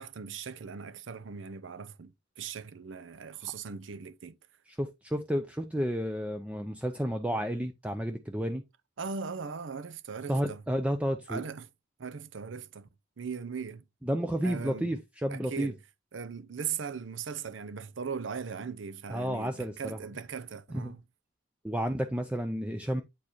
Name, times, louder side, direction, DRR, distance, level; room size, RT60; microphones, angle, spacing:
voice 1, 0.0-4.4 9.0-10.6 11.3-11.7 12.0-12.9 13.2-13.8 14.4-14.9 15.3-15.8 16.1-21.0, right 6 dB, 70° right, 0.6 m, -39 dB
voice 2, 4.7-8.6 10.3-11.4 14.0-15.7 19.1-20.0 20.7-21.0 21.6-23.0, equal, 5° right, 0.4 m, -31 dB
8.4 x 4.6 x 3.0 m
head